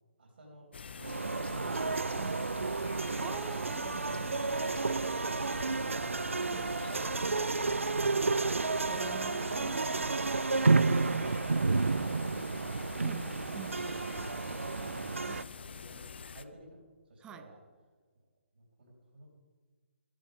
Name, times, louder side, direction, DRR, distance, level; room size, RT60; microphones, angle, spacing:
voice 1, 0.2-2.0 4.5-6.3 15.5-17.6 18.5-19.3, right 1 dB, 60° right, -1 dB, 3.7 m, -54 dB
sound 1, 0.7-16.4, left 6 dB, 55° left, 0.6 m, -46 dB
sound 2, 1.0-15.4, right 3 dB, 75° right, 0.4 m, -31 dB
voice 2, 3.2-4.0 6.5-6.7 8.9-10.0 13.0-14.0 15.2-15.5 17.2-17.5, right 9 dB, 10° right, 13 dB, 0.5 m, -47 dB
15.0 x 14.5 x 3.5 m, 1.4 s
figure-of-eight pair, 135°, 7 cm